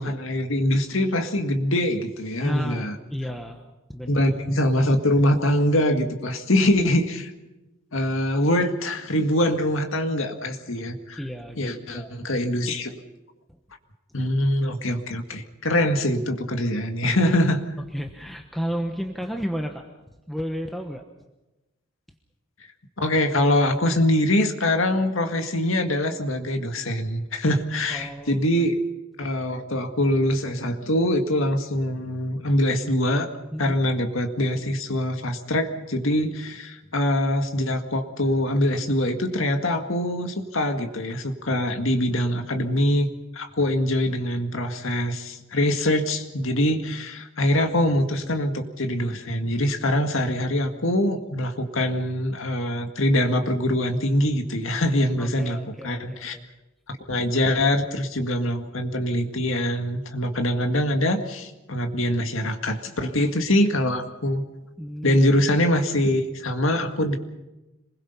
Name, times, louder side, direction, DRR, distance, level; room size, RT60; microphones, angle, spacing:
voice 1, 0.0-3.0 4.1-7.3 7.9-11.2 11.6-12.9 14.1-17.6 23.0-28.8 29.2-33.3 33.6-43.1 43.3-55.6 55.8-56.4 57.1-64.4 65.0-67.2, left 1 dB, 70° left, 5 dB, 2.0 m, -23 dB
voice 2, 2.4-3.6 3.9-4.3 11.2-12.1 13.5-13.6 17.9-19.8 20.3-21.0 27.9-28.4 33.5-33.7 41.5-41.6 55.2-56.5 64.8-65.2, equal, ahead, 3 dB, 1.1 m, -32 dB
27.0 x 21.0 x 5.6 m, 1.0 s
head